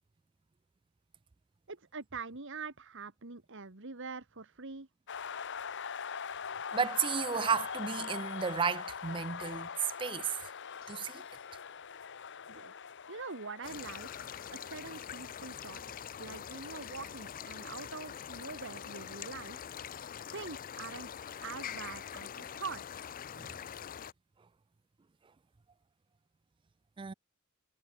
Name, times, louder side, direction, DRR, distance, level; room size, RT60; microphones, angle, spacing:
voice 1, 1.7-4.9 12.5-12.7 13.1-15.8 16.2-19.7 20.3-22.8, right 4 dB, 60° right, 1.8 m, -44 dB
sound 1, 5.1-16.8, left 6 dB, 60° left, 1.0 m, -43 dB
voice 2, 6.7-9.7 10.0-10.4 10.9-11.2 23.4-23.5 27.0-27.1, right 6 dB, 25° right, 0.4 m, -33 dB
sound 2, 10.8-11.7 13.8-14.7 16.8-17.7 19.8-20.7, left 11 dB, 75° left, 7.7 m, -65 dB
sound 3, 13.6-24.1, left 8 dB, 40° left, 0.4 m, -44 dB
head